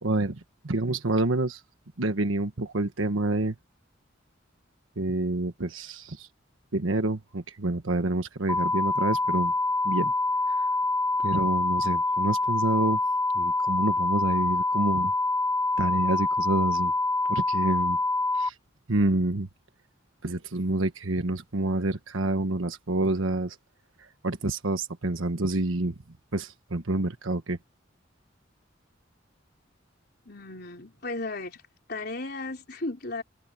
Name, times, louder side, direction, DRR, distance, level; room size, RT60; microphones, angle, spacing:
voice 1, 0.0-1.6 2.0-3.6 5.0-6.3 6.7-9.5 9.8-10.1 10.5-10.7 11.2-13.0 13.3-15.1 15.8-16.9 17.3-18.0 18.3-18.6 18.9-19.5 20.2-23.6 24.0-25.9 26.3-27.6, right 2 dB, 85° right, 1.4 m, -28 dB
sound 1, 8.5-18.5, left 2 dB, 10° left, 2.2 m, -26 dB
voice 2, 30.3-31.6 31.9-33.2, left 2 dB, 50° left, 4.2 m, -35 dB
head